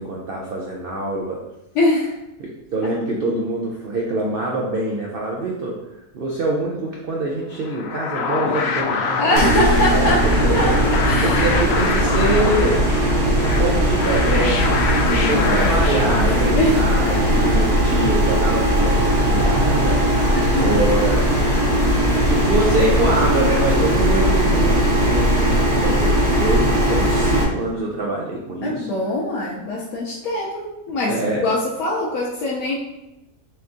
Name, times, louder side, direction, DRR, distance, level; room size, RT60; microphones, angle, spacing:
voice 1, 0.0-1.4 2.4-5.8 6.1-9.6 9.9-20.4 20.6-21.3 22.3-28.9 31.1-31.5, right 2 dB, 75° right, -2 dB, 0.5 m, -25 dB
voice 2, 1.7-2.1 9.2-11.5 15.0-15.7 16.2-16.8 17.0-17.8 19.1-19.5 20.3-20.7 28.6-32.8, left 1 dB, 70° left, -6 dB, 1.2 m, -23 dB
sound 1, 7.6-17.0, left 5 dB, 90° left, 0.5 m, -26 dB
sound 2, 9.4-27.4, equal, 50° right, 1.1 m, -18 dB
4.2 x 3.6 x 2.6 m, 0.92 s
omnidirectional pair, 1.7 m